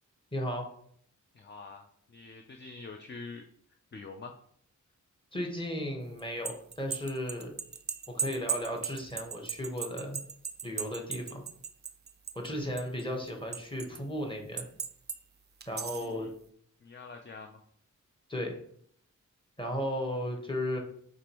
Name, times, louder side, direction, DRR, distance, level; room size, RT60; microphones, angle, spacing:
voice 1, 0.3-0.7 5.3-7.6 8.1-10.2 10.6-11.4 12.3-14.7 15.7-16.3 18.3-18.6 19.6-20.8, equal, 15° left, 1 dB, 1.1 m, -35 dB
voice 2, 1.3-3.4 3.9-4.3 15.9-16.3 16.8-17.6, left 4 dB, 35° left, 4 dB, 0.4 m, -46 dB
sound 1, 6.2-12.5 12.8-14.0 14.6-15.2 15.6-16.1, right 6 dB, 35° right, 0.4 m, -36 dB
5.0 x 3.4 x 2.9 m, 0.63 s
wide cardioid pair, 80°, 32 cm